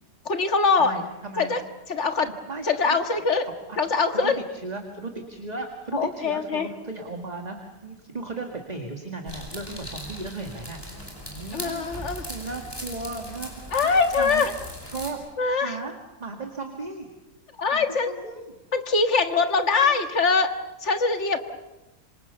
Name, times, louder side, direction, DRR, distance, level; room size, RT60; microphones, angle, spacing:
voice 1, 0.3-1.0 1.4-1.6 1.9-2.3 2.6-3.5 3.8-4.4 5.9-6.7 11.5-12.3 13.7-14.5 15.4-15.8 17.6-18.1 18.7-21.4, left 4 dB, 45° left, 7 dB, 1.9 m, -23 dB
voice 2, 0.8-1.6 2.2-2.6 3.4-3.8 4.1-4.3 4.6-10.8 11.3-12.0 12.3-13.5 13.8-14.5 14.9-15.2 15.6-15.9 16.2-17.1 17.7-18.5 19.6-20.0, right 3 dB, 25° right, 3 dB, 2.1 m, -36 dB
sound 1, 9.3-15.1, equal, 15° left, 5.3 m, -39 dB
26.5 x 25.5 x 7.0 m, 1.0 s
omnidirectional pair, 1.7 m